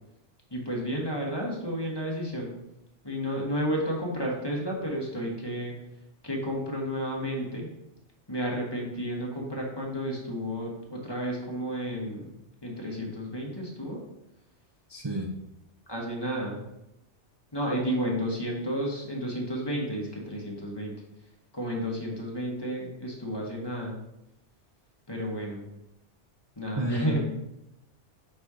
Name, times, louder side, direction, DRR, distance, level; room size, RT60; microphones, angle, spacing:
voice 1, 0.5-2.5 3.0-5.7 6.2-7.7 8.3-12.3 12.6-14.0 15.9-16.6 17.5-20.9 21.5-23.9 25.1-25.6 26.6-27.2, equal, 20° left, -2 dB, 1.3 m, -32 dB
voice 2, 14.9-15.3 26.8-27.2, right 1 dB, 25° right, -1 dB, 0.6 m, -30 dB
5.6 x 4.2 x 4.8 m, 0.87 s
omnidirectional pair, 1.2 m